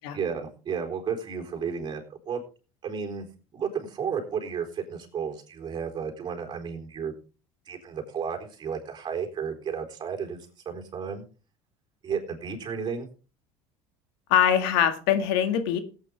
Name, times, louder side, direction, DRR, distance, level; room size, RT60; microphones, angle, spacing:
voice 1, 0.1-2.4 2.8-3.2 3.5-7.1 7.7-11.2 12.0-13.1, right 6 dB, 35° right, 2 dB, 3.9 m, -33 dB
voice 2, 14.3-15.8, left 9 dB, 80° left, 8 dB, 1.9 m, -22 dB
17.0 x 8.9 x 3.4 m, 0.34 s
supercardioid pair, 110°, 12 cm